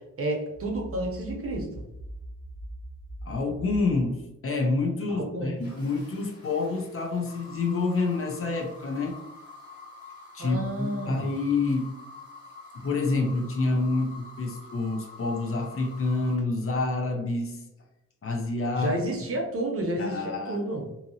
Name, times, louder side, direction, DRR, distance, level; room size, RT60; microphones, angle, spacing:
voice 1, 0.0-1.7 5.1-5.6 10.4-11.3 18.8-20.9, right 1 dB, 50° right, 0 dB, 0.7 m, -31 dB
sound 1, 0.5-4.1, right 1 dB, 5° right, 0.4 m, -41 dB
voice 2, 3.3-9.2 10.3-11.9 12.7-17.6 18.2-19.0 20.0-20.7, left 3 dB, 50° left, 3 dB, 0.5 m, -28 dB
sound 2, 5.6-16.4, left 3 dB, 75° left, 1.0 m, -47 dB
2.7 x 2.7 x 2.6 m, 0.92 s
wide cardioid pair, 170°, 29 cm